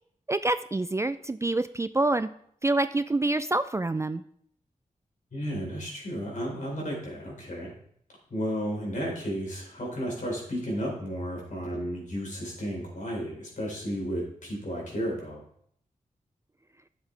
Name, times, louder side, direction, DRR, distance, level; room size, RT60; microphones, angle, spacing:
voice 1, 0.3-2.3 2.6-4.2, right 2 dB, 20° right, 12 dB, 0.3 m, -26 dB
voice 2, 5.3-7.7 8.3-15.4, equal, 65° left, -2 dB, 4.0 m, -33 dB
10.0 x 7.3 x 3.3 m, 0.66 s
cardioid pair, 55°, 14 cm